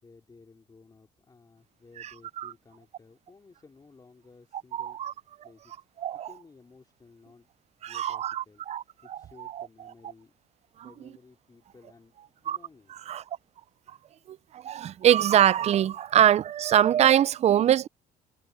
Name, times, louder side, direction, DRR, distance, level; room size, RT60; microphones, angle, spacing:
voice 1, 0.0-5.0 5.4-5.8 6.1-7.5 7.8-8.6 9.0-10.3 10.8-12.9, left 4 dB, 25° left, 2.8 m, -55 dB
voice 2, 4.7-5.1 6.0-6.3 7.8-8.8 9.1-9.2 9.5-9.7 12.5-12.6 13.1-13.2 14.3-17.9, right 10 dB, 40° right, 0.4 m, -23 dB
cardioid pair, 110°, 17 cm